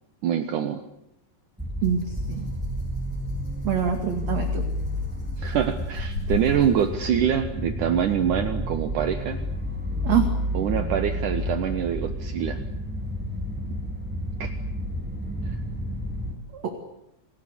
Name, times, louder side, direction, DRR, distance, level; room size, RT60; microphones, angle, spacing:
voice 1, 0.2-0.8 5.4-9.4 10.5-12.6 14.4-14.5 15.4-15.6, right 9 dB, 65° right, 8 dB, 2.0 m, -25 dB
sound 1, 1.6-16.3, left 1 dB, ahead, 4.9 m, -30 dB
Rattle (instrument), 1.8-7.1, left 4 dB, 35° left, 9.2 m, -37 dB
voice 2, 1.8-2.5 3.6-4.6 10.0-10.3 16.5-16.8, right 8 dB, 45° right, 5 dB, 2.7 m, -25 dB
27.5 x 20.0 x 9.9 m, 0.83 s
omnidirectional pair, 5.4 m